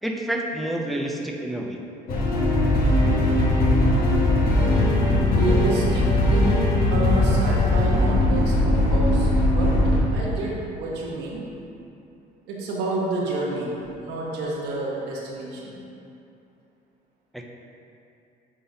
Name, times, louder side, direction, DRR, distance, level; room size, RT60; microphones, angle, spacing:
voice 1, 0.0-1.8 17.3-17.4, right 1 dB, ahead, 0 dB, 0.5 m, -28 dB
sound 1, 2.1-10.0, left 1 dB, 60° left, 1.4 m, -20 dB
voice 2, 5.3-11.4 12.5-13.7 14.0-15.8, right 2 dB, 90° right, -4 dB, 1.2 m, -29 dB
9.2 x 4.0 x 2.8 m, 2.7 s
cardioid pair, 110°, 17 cm